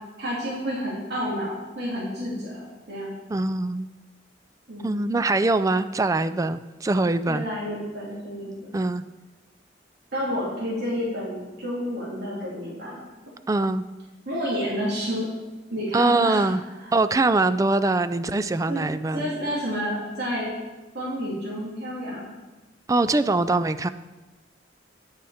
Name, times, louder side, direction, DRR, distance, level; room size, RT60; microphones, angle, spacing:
voice 1, 0.2-3.1 4.7-4.9 7.3-8.7 10.1-13.0 14.2-15.3 15.7-16.5 18.7-18.8 19.1-20.5 20.9-22.3, equal, 60° right, -7 dB, 3.1 m, -30 dB
voice 2, 3.3-3.9 4.8-7.5 8.7-9.0 13.5-13.8 15.9-16.6 16.9-19.3 22.9-23.9, right 2 dB, 20° right, 12 dB, 0.3 m, -23 dB
10.5 x 6.9 x 5.0 m, 1.1 s
head